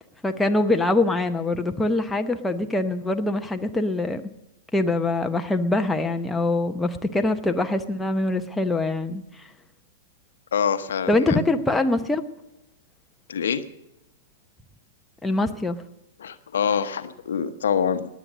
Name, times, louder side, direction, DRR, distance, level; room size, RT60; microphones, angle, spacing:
voice 1, 0.2-4.2 4.7-9.5 11.1-12.2 15.2-15.8, left 2 dB, 5° left, 5 dB, 0.9 m, -23 dB
voice 2, 10.5-11.4 13.3-13.6 16.2-18.1, left 7 dB, 70° left, 10 dB, 0.9 m, -25 dB
20.0 x 8.5 x 6.4 m, 0.90 s
figure-of-eight pair, 105°, 0 cm